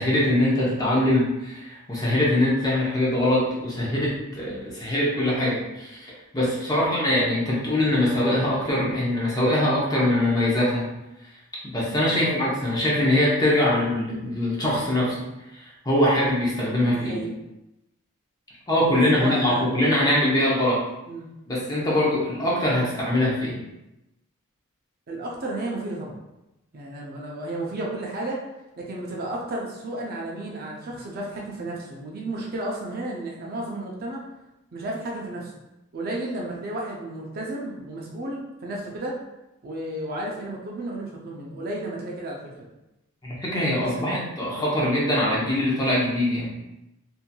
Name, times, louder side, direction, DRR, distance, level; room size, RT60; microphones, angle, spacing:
voice 1, 0.0-10.9 11.6-15.3 15.5-17.3 18.7-20.8 21.5-23.6 43.2-46.5, left 1 dB, 15° left, -6 dB, 0.7 m, -23 dB
voice 2, 16.9-17.3 18.9-19.7 21.1-21.3 25.1-26.2 26.7-28.4 28.8-34.2 34.7-35.5 35.9-39.2 39.6-42.7 43.7-44.2 44.5-44.6, right 1 dB, 40° right, -3 dB, 0.5 m, -33 dB
2.9 x 2.6 x 2.2 m, 0.93 s
head